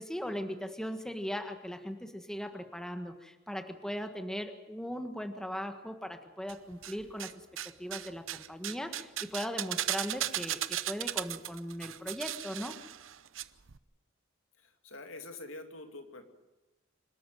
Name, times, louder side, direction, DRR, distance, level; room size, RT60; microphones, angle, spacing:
voice 1, 0.0-12.8, equal, 5° left, 6 dB, 1.5 m, -39 dB
sound 1, 6.5-7.3 7.6-13.4 13.7-13.8, right 12 dB, 80° right, 0.8 m, -36 dB
voice 2, 14.6-16.3, left 2 dB, 90° left, 6 dB, 2.7 m, -46 dB
26.0 x 13.0 x 9.2 m, 1.1 s
head